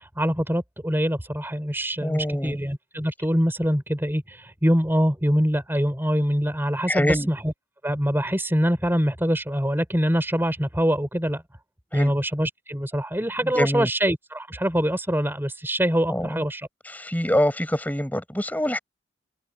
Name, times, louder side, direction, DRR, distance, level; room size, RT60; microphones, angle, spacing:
voice 1, 0.0-7.5 7.8-11.4 11.9-16.7, equal, 10° right, 5.3 m, -24 dB
voice 2, 2.0-2.6 6.9-7.3 11.9-12.1 13.5-13.9 16.1-16.4 16.9-18.8, left 1 dB, 10° left, 7.8 m, -24 dB
open air
head